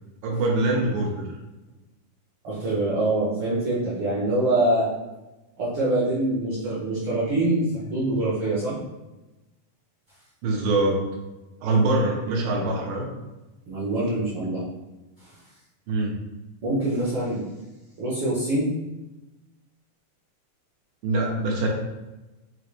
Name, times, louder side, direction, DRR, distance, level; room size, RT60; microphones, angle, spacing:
voice 1, 0.2-1.3 10.4-11.0 11.6-13.1 15.9-16.1 21.0-21.7, right 2 dB, 85° right, -2 dB, 2.5 m, -23 dB
voice 2, 2.4-4.9 5.6-8.7 13.7-14.7 15.2-15.3 16.6-17.4 18.0-18.7, right 1 dB, 65° right, -9 dB, 1.4 m, -24 dB
5.5 x 3.0 x 3.2 m, 1.1 s
omnidirectional pair, 3.8 m